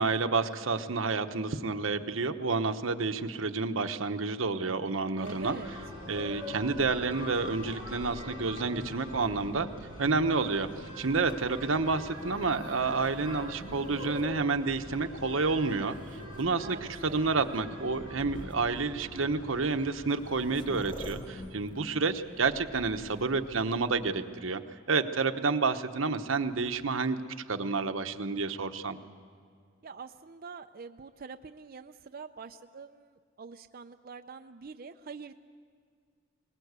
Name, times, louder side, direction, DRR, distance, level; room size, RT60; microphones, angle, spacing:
voice 1, 0.0-5.6 6.1-9.7 10.0-16.0 16.4-24.6 24.9-27.2 27.5-29.0, right 4 dB, 90° right, 7 dB, 1.1 m, -29 dB
sound 1, 5.2-21.5, left 1 dB, 80° left, 5.9 m, -43 dB
voice 2, 5.2-5.7 16.6-17.2 29.8-35.3, right 5 dB, 50° right, 7 dB, 0.5 m, -45 dB
sound 2, 11.2-15.0 15.7-16.4 17.5-17.6 18.4-18.5 19.7-19.8 20.0-24.4 26.4-27.1, equal, 25° left, 1.3 m, -50 dB
22.0 x 20.0 x 8.2 m, 2.1 s
head